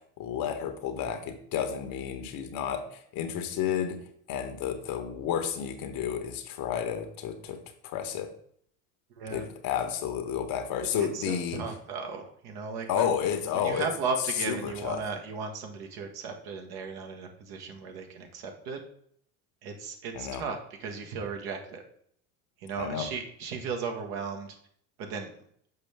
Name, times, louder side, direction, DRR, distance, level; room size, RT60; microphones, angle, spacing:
voice 1, 0.2-4.0 4.3-8.3 9.3-11.6 12.9-13.8 14.5-15.0 20.1-20.4 22.8-23.1, left 8 dB, 50° left, 7 dB, 1.2 m, -31 dB
voice 2, 11.0-13.1 13.5-18.8 19.6-21.8 22.6-24.5 25.0-25.3, right 5 dB, 55° right, 3 dB, 1.5 m, -36 dB
6.7 x 5.3 x 3.5 m, 0.64 s
hypercardioid pair, 75°, 44 cm